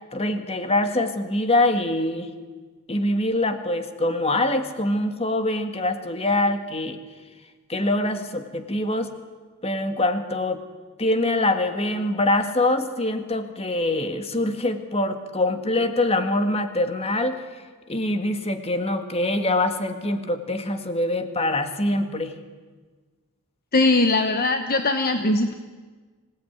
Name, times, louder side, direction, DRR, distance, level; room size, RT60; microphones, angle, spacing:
voice 1, 0.1-2.3 2.9-7.0 7.7-9.1 9.6-10.6 11.0-17.4 17.9-22.3, left 1 dB, 25° left, 7 dB, 1.8 m, -24 dB
voice 2, 23.7-25.5, left 2 dB, 45° left, 7 dB, 1.1 m, -20 dB
26.0 x 18.0 x 9.5 m, 1.4 s
head